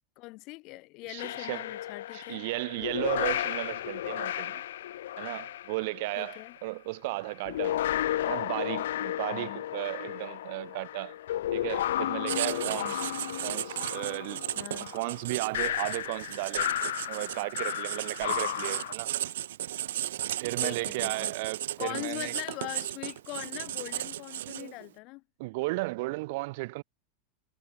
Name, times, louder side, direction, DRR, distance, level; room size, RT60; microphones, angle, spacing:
voice 1, 0.2-2.4 6.2-6.6 9.3-9.6 12.7-13.0 14.6-15.0 20.6-21.3 21.8-25.2, left 24 dB, 40° left, 5.4 m, -41 dB
voice 2, 1.1-1.7 2.1-4.6 5.2-7.8 8.3-11.2 11.5-13.0 13.4-14.4 14.8-16.7 17.1-19.1 20.4-22.3 25.4-26.8, right 23 dB, 55° right, 1.7 m, -34 dB
sound 1, 1.2-6.6 7.3-18.9, left 12 dB, 90° left, 0.4 m, -33 dB
Writing, 12.3-24.9, right 12 dB, 90° right, 1.6 m, -35 dB
supercardioid pair, 160°, 0 cm